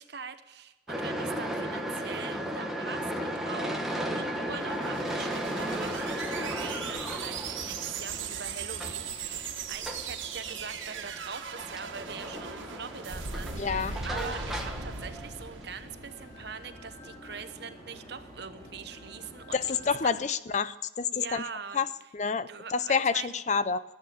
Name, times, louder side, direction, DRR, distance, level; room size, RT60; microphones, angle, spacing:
voice 1, 0.0-20.3 21.1-21.8 22.5-23.4, right 5 dB, 55° right, 10 dB, 1.0 m, -43 dB
sound 1, 0.9-15.6, equal, ahead, 1.3 m, -36 dB
sound 2, 4.4-16.7, right 5 dB, 90° right, 1.6 m, -39 dB
sound 3, 11.6-20.0, equal, 20° left, 5.0 m, -49 dB
voice 2, 13.6-14.0 19.5-21.4 21.7-21.9 22.1-23.8, left 5 dB, 35° left, 15 dB, 0.4 m, -28 dB
14.5 x 8.7 x 7.8 m, 1.1 s
head